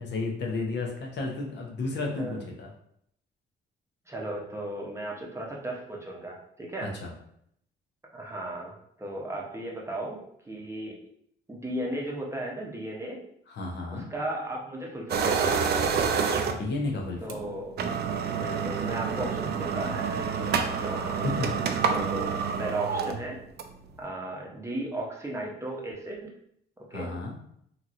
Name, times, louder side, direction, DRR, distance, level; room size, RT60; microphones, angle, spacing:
voice 1, 0.0-2.7 6.8-7.1 13.5-14.1 16.4-17.4 21.2-21.5 26.9-27.3, left 3 dB, 65° left, 0 dB, 0.8 m, -32 dB
voice 2, 4.1-6.9 8.1-10.2 10.4-11.0 11.5-13.2 13.9-15.6 17.2-17.8 18.3-21.6 21.9-22.3 22.6-23.4 24.0-26.3 26.9-27.1, right 1 dB, 15° right, -2 dB, 0.7 m, -35 dB
sound 1, 15.1-16.8 17.3-17.4 17.7-23.9, right 6 dB, 55° right, 0.4 m, -28 dB
2.9 x 2.8 x 2.5 m, 0.70 s
cardioid pair, 90°, 20 cm